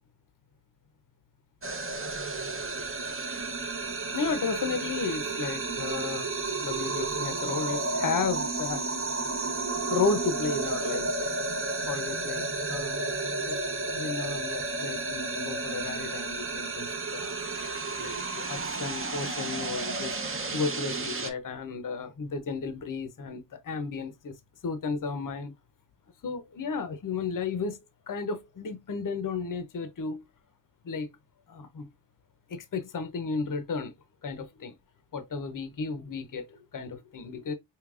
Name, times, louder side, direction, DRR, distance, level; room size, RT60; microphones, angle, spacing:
sound 1, 1.6-21.3, right 3 dB, 30° right, 0.7 m, -32 dB
voice 1, 4.1-6.3 6.6-8.8 9.9-11.4 11.9-13.1 13.5-13.6 13.9-16.9 17.1-17.3 18.0-24.3 24.6-25.5 26.2-27.8 28.1-30.2 30.8-31.1 31.5-31.9 32.5-33.9 34.2-34.7 35.1-37.5, left 5 dB, 45° left, 0.7 m, -33 dB
4.8 x 2.9 x 2.4 m
wide cardioid pair, 110°, 44 cm